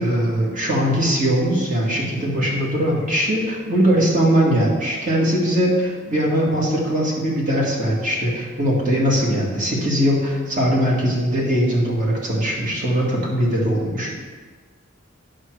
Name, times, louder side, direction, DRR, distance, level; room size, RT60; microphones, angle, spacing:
voice 1, 0.0-14.2, equal, 35° right, -3 dB, 2.1 m, -20 dB
8.9 x 6.5 x 4.8 m, 1.4 s
head